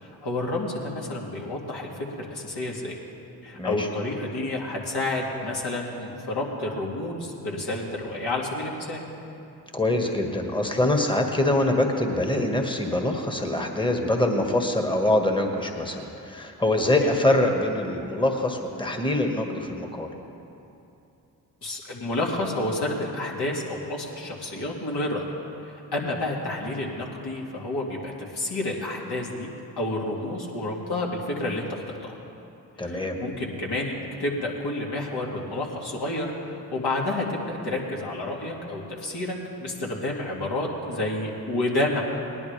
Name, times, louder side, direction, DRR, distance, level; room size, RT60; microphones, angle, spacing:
voice 1, 0.0-3.0 3.4-9.0 17.0-17.1 21.6-25.2 25.6-29.5 29.8-31.8 32.8-42.0, left 2 dB, 55° left, -3 dB, 2.6 m, -30 dB
voice 2, 9.7-20.1 32.8-33.2, left 1 dB, 10° left, 3 dB, 1.8 m, -24 dB
19.5 x 10.5 x 3.4 m, 2.8 s
hypercardioid pair, 40°, 47 cm